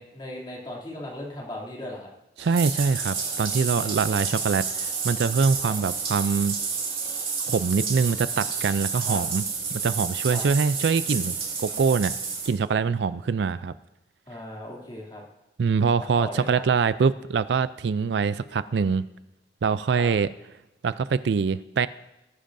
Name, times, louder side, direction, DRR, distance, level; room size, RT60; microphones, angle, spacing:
voice 1, 0.0-2.1 5.6-5.8 9.0-9.2 10.3-10.4 14.3-15.2 16.0-16.6 19.9-20.1, left 1 dB, 25° left, -3 dB, 2.7 m, -38 dB
Bathtub (filling or washing), 2.4-12.5, right 5 dB, 30° right, 2.7 m, -30 dB
voice 2, 2.4-6.6 7.4-9.4 9.7-12.2 12.5-13.7 15.6-19.1 19.6-20.3 20.8-21.9, right 5 dB, 70° right, 15 dB, 0.4 m, -24 dB
19.0 x 10.0 x 2.6 m, 0.93 s
head